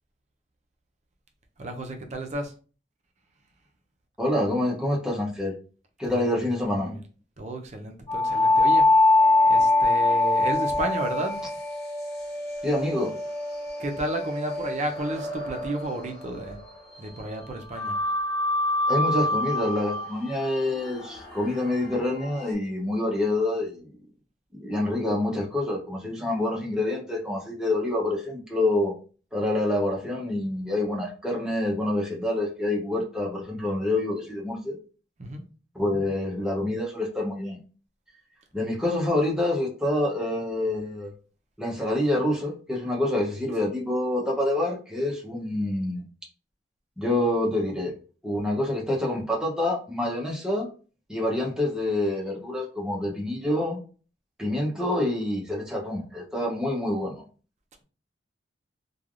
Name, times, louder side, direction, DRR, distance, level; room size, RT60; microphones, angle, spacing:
voice 1, 1.6-2.5 6.0-6.5 6.8-7.0 7.4-8.9 9.5-11.4 13.8-16.6 17.0-18.0 35.2-35.4, right 1 dB, 40° right, 0.5 m, -32 dB
voice 2, 4.2-5.5 6.0-7.0 12.6-13.1 18.9-23.9 24.6-28.9 29.3-34.8 35.7-37.6 38.5-41.1 41.6-46.0 47.0-47.9 48.2-50.7 51.1-53.8 54.4-57.2, left 1 dB, 5° right, 0.7 m, -27 dB
sound 1, 8.1-16.9 17.7-22.5, left 2 dB, 15° left, 1.0 m, -25 dB
3.2 x 2.3 x 2.4 m
head